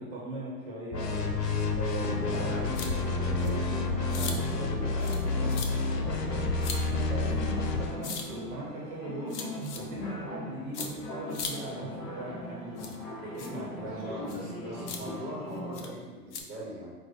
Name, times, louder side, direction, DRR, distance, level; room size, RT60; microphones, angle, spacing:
voice 1, 0.0-1.3 1.7-6.5 6.9-9.4 9.7-14.6, right 1 dB, 45° right, -5 dB, 1.2 m, -40 dB
sound 1, 0.9-8.0, left 3 dB, 80° left, 0.8 m, -29 dB
sound 2, 1.9-15.8, left 1 dB, 25° left, 1.0 m, -40 dB
sound 3, 2.7-2.9 3.4-3.5 4.1-4.4 5.0-5.2 5.5-5.7 6.6-6.8 8.0-8.2 9.3-9.8 10.7-10.9 11.3-11.5 12.8-13.0 13.4-13.5 14.3-14.4 14.9-15.0 15.7-15.9 16.3-16.4, left 6 dB, 45° left, 0.7 m, -37 dB
voice 2, 13.8-16.9, equal, 20° right, -5 dB, 1.4 m, -41 dB
4.6 x 2.5 x 4.3 m, 1.3 s
hypercardioid pair, 115°, 48 cm